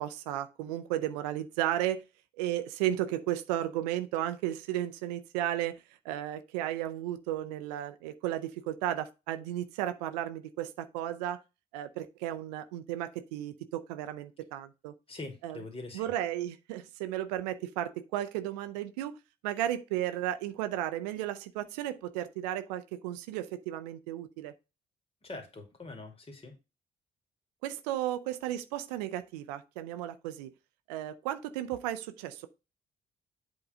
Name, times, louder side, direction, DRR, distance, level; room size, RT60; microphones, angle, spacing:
voice 1, 0.0-2.0 2.4-5.8 6.0-11.4 11.7-14.9 15.4-15.6 15.9-19.2 19.4-24.5 27.6-30.5 30.9-32.5, right 12 dB, 85° right, 0.6 m, -34 dB
voice 2, 15.1-16.1 25.2-26.6, left 2 dB, 30° left, 2.4 m, -43 dB
7.9 x 3.8 x 5.2 m
hypercardioid pair, 45°, 20 cm